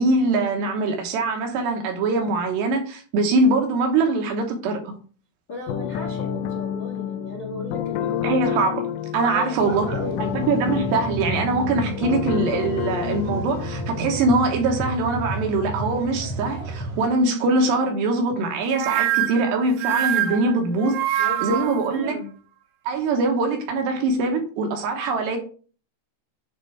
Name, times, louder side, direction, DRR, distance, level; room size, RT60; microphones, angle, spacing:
voice 1, 0.0-5.0 8.2-9.9 10.2-22.2 22.9-25.4, right 3 dB, 70° right, 3.1 m, -23 dB
voice 2, 5.5-8.3 9.2-10.3 21.2-22.3, left 2 dB, 55° left, 1.2 m, -35 dB
sound 1, 5.7-14.2, left 10 dB, 80° left, 2.6 m, -29 dB
sound 2, 9.6-17.1, right 2 dB, 55° right, 4.1 m, -32 dB
sound 3, 18.7-21.8, right 12 dB, 85° right, 2.3 m, -24 dB
10.5 x 3.7 x 4.6 m
omnidirectional pair, 5.5 m